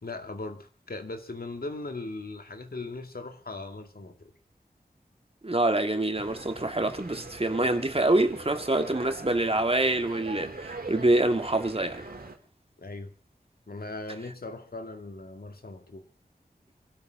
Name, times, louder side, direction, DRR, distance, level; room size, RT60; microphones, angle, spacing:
voice 1, 0.0-4.3 12.8-13.1 13.7-16.1, left 2 dB, 70° left, 2.3 m, -39 dB
voice 2, 5.4-12.0, right 2 dB, 35° right, 2.0 m, -26 dB
sound 1, 6.1-12.4, right 3 dB, 65° right, 3.2 m, -42 dB
26.0 x 12.5 x 3.8 m
wide cardioid pair, 65°, 16 cm